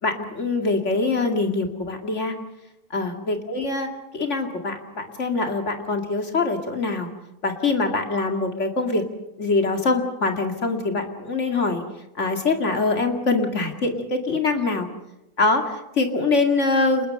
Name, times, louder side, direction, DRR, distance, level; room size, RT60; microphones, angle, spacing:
voice 1, 0.0-2.3 2.9-3.9 4.1-7.1 7.4-9.0 9.4-11.8 12.2-14.9 15.4-17.1, left 3 dB, 55° left, 4 dB, 2.6 m, -23 dB
29.5 x 20.5 x 5.5 m, 0.92 s
omnidirectional pair, 1.5 m